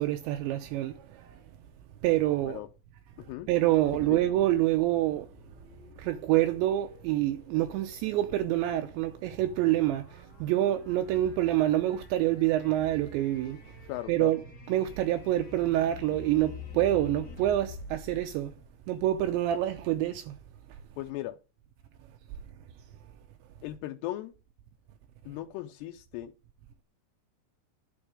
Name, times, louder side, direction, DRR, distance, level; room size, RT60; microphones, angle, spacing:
voice 1, 0.0-1.4 2.0-2.6 3.2-5.3 6.0-13.8 14.1-18.6 18.9-20.4 20.7-20.8, right 14 dB, 80° right, 2.8 m, -27 dB
sound 1, 3.0-19.3, left 5 dB, 45° left, 1.4 m, -49 dB
voice 2, 13.9-14.3 21.0-21.4 23.6-24.3 25.3-26.3, left 15 dB, 80° left, 2.4 m, -37 dB
11.5 x 7.0 x 5.0 m
omnidirectional pair, 5.5 m